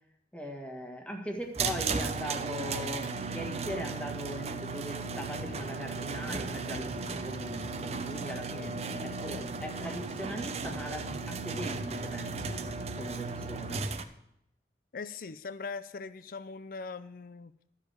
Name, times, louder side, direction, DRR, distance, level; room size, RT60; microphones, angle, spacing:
voice 1, 0.3-8.8 9.0-12.6 13.0-13.8, equal, 5° left, 2 dB, 1.6 m, -40 dB
sound 1, 1.5-14.0, right 4 dB, 35° right, 0.7 m, -35 dB
voice 2, 14.9-17.7, left 4 dB, 50° left, 14 dB, 0.5 m, -41 dB
13.0 x 4.9 x 8.1 m, 0.79 s
head